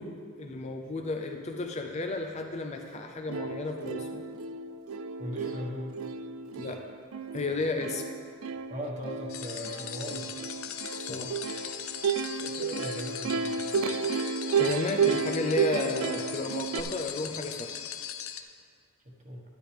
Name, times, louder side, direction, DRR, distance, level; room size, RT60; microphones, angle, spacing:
voice 1, 0.0-4.2 6.6-6.8 7.3-8.0 11.0-11.4 14.6-17.7, left 3 dB, 30° left, 3 dB, 0.5 m, -33 dB
Plucked string instrument, 2.9-3.0 3.3-16.8, right 5 dB, 70° right, 0.4 m, -32 dB
voice 2, 5.2-5.9 8.7-10.3 12.4-13.6 19.0-19.4, equal, 35° right, -2 dB, 1.5 m, -38 dB
sound 1, 9.3-18.4, left 9 dB, 70° left, 0.6 m, -40 dB
12.0 x 10.5 x 3.5 m, 2.2 s
head